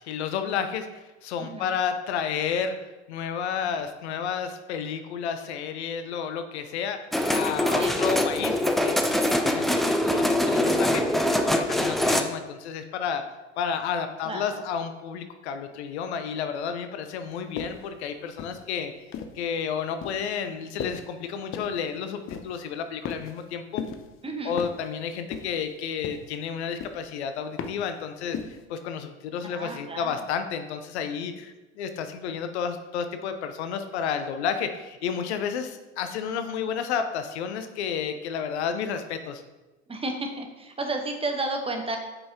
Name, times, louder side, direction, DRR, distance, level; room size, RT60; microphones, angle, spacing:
voice 1, 0.0-7.0 7.3-11.0 11.4-13.2 13.6-18.9 19.3-23.8 24.4-28.4 28.7-39.4, left 7 dB, 70° left, 8 dB, 0.7 m, -31 dB
voice 2, 1.4-1.7 7.8-8.0 14.2-14.6 24.2-24.6 29.4-30.2 39.9-42.0, right 2 dB, 15° right, 4 dB, 1.1 m, -32 dB
sound 1, 7.1-12.2, left 1 dB, ahead, 0.3 m, -23 dB
sound 2, 17.6-17.9 18.4-19.5 20.0-20.3 20.8-21.1 21.5-21.8 22.3-22.6 23.1-23.5 23.8-24.1 24.6-24.9 25.3-25.7 26.0-26.4 26.8-27.1 27.6-27.9 28.3-28.6, left 6 dB, 35° left, 0.7 m, -36 dB
8.5 x 5.4 x 2.8 m, 1.1 s
figure-of-eight pair, 75°, 36 cm